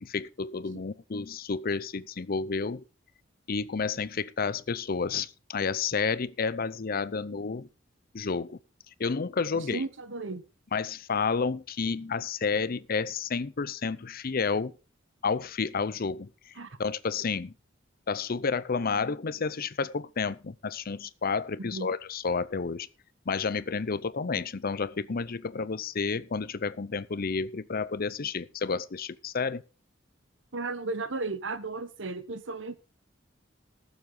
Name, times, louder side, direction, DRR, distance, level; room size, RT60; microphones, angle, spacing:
voice 1, 0.0-2.8 3.5-7.7 8.1-8.6 9.0-9.8 10.7-14.7 15.2-16.3 16.8-17.5 18.1-22.9 23.3-29.6, left 5 dB, 50° left, 0.6 m, -30 dB
voice 2, 9.7-10.4 16.6-16.8 21.6-21.9 30.5-32.8, right 3 dB, 70° right, 1.1 m, -34 dB
19.5 x 7.3 x 3.8 m
head